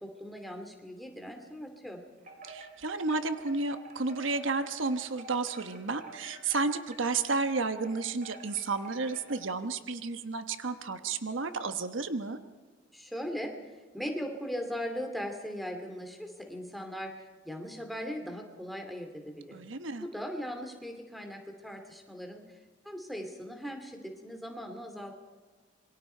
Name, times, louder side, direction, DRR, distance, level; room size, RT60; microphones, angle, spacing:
voice 1, 0.0-2.0 12.9-13.5 13.9-17.2 17.4-19.6 20.0-22.6 22.8-25.1, equal, ahead, 3 dB, 2.6 m, -39 dB
Wind chime, 2.2-9.6, right 2 dB, 45° right, 4.3 m, -50 dB
voice 2, 2.4-12.4 19.5-20.1, right 3 dB, 80° right, 9 dB, 1.2 m, -32 dB
27.0 x 23.0 x 4.5 m, 1.4 s
head